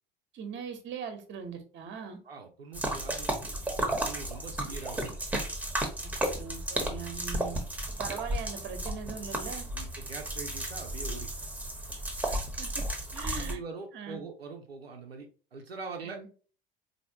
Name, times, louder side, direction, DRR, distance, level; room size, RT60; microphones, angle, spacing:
voice 1, 0.3-2.2 6.0-6.1 6.4-7.6 8.0-9.7 12.3-12.8 13.1-13.6 13.9-14.2 16.0-16.4, right 6 dB, 40° right, 6 dB, 1.1 m, -40 dB
voice 2, 2.2-5.1 9.7-11.3 13.1-16.2, right 4 dB, 90° right, 3 dB, 0.7 m, -43 dB
sound 1, 2.7-13.5, right 1 dB, 5° right, 1.1 m, -33 dB
4.2 x 2.8 x 2.8 m, 0.37 s
figure-of-eight pair, 70°, 29 cm